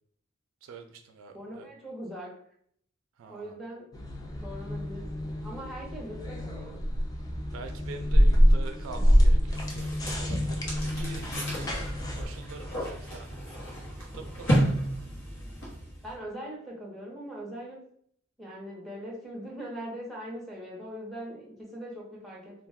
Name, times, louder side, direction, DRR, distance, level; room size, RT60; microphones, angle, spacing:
voice 1, 0.6-1.7 3.2-3.6 7.5-11.9 12.1-13.3 14.0-14.8, right 4 dB, 75° right, 5 dB, 0.3 m, -45 dB
voice 2, 1.3-2.3 3.3-3.9 4.2-6.8 16.0-17.8 18.4-22.7, equal, ahead, -4 dB, 0.8 m, -41 dB
sound 1, 3.9-12.3, equal, 20° left, 0.4 m, -26 dB
sound 2, 9.5-16.1, equal, 65° left, 1.0 m, -32 dB
2.3 x 2.2 x 3.4 m, 0.64 s
head